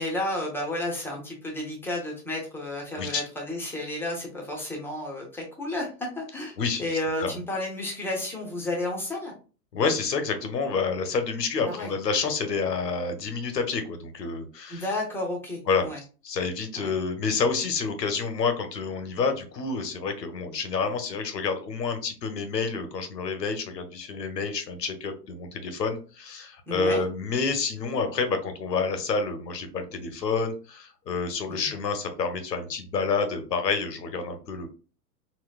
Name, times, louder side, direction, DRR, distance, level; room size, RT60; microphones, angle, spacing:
voice 1, 0.0-9.3 11.7-11.9 14.7-16.0 16.8-16.9 26.7-27.0 31.5-31.7, left 1 dB, 5° left, -1 dB, 0.6 m, -32 dB
voice 2, 9.7-14.9 15.7-15.9 16.2-34.7, left 4 dB, 90° left, 7 dB, 0.8 m, -28 dB
3.9 x 2.2 x 2.3 m, 0.36 s
hypercardioid pair, 110°, 48 cm